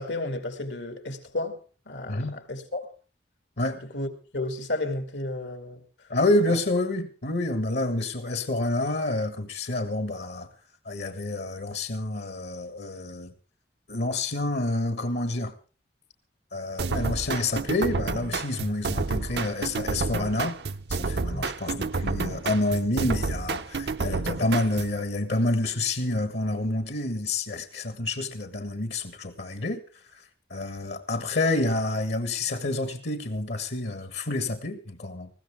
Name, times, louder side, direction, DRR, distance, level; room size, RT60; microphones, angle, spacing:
voice 1, 0.0-1.6 1.9-2.9 3.8-5.8 21.3-21.5 24.0-24.2, left 2 dB, 85° left, 2.4 m, -33 dB
voice 2, 2.1-2.4 3.6-3.8 6.1-10.5 10.8-13.3 13.9-15.5 16.5-20.6 20.9-29.8 30.1-30.2 30.5-35.3, left 2 dB, 70° left, 1.6 m, -28 dB
sound 1, 16.8-25.0, right 4 dB, 65° right, 0.7 m, -30 dB
20.5 x 15.5 x 3.5 m
head